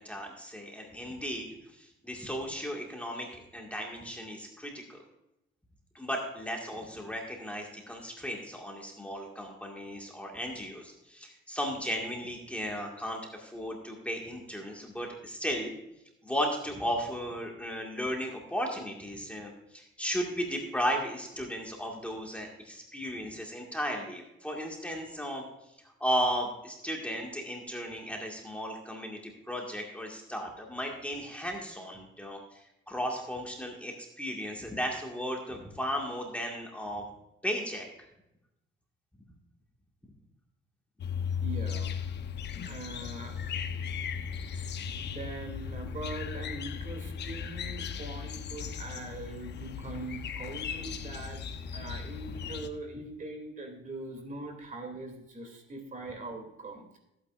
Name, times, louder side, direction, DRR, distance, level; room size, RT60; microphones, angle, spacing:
voice 1, 0.0-5.0 6.0-15.7 16.2-25.4 26.0-29.2 29.5-37.0 37.4-37.9, equal, 5° left, 0 dB, 1.8 m, -35 dB
sound 1, 41.0-52.7, left 7 dB, 55° left, 0.9 m, -37 dB
voice 2, 41.4-41.9 42.6-43.5 45.0-51.4 51.7-57.0, right 2 dB, 40° right, 4 dB, 2.7 m, -42 dB
15.0 x 8.9 x 2.5 m, 0.87 s
cardioid pair, 95°, 21 cm